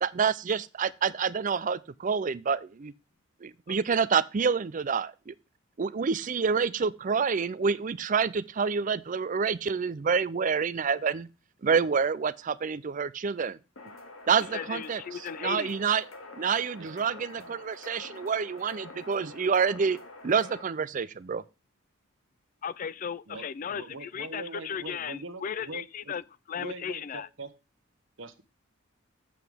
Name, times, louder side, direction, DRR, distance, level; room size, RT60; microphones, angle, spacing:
voice 1, 0.0-2.9 3.4-5.3 5.8-11.3 11.6-13.6 14.3-15.0 15.4-16.0 16.4-20.0 20.2-21.4, right 6 dB, 40° right, 0.4 m, -27 dB
sound 1, 13.8-20.6, left 2 dB, 85° left, 2.0 m, -47 dB
voice 2, 14.4-15.8 22.6-27.3, left 7 dB, 40° left, 0.3 m, -36 dB
voice 3, 16.8-17.6 23.3-23.4 23.7-26.1 26.6-27.5 28.2-28.4, right 3 dB, 65° right, 1.1 m, -43 dB
8.1 x 7.6 x 3.5 m
head